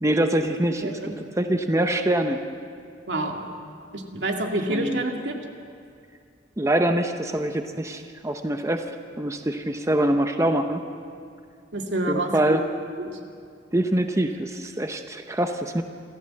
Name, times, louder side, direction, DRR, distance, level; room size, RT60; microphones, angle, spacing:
voice 1, 0.0-2.4 4.7-5.0 6.6-8.8 9.2-10.8 12.1-12.6 13.7-15.8, right 1 dB, 15° right, 6 dB, 0.8 m, -24 dB
voice 2, 0.8-1.2 3.1-3.4 3.9-5.4 11.7-12.6 13.0-13.1, right 1 dB, 75° right, 2 dB, 2.4 m, -28 dB
27.0 x 14.5 x 7.7 m, 2.3 s
head